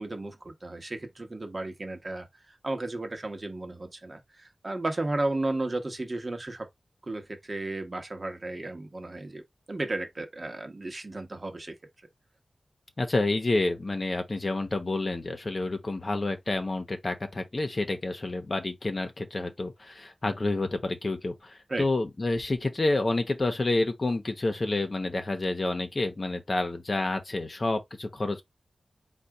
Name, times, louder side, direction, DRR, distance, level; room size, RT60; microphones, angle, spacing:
voice 1, 0.0-6.7 7.0-9.4 9.7-11.7 21.7-21.9, right 2 dB, 35° right, 1.1 m, -34 dB
voice 2, 13.0-28.4, left 2 dB, 40° left, 0.9 m, -29 dB
4.1 x 2.4 x 4.8 m
wide cardioid pair, 105°, 0 cm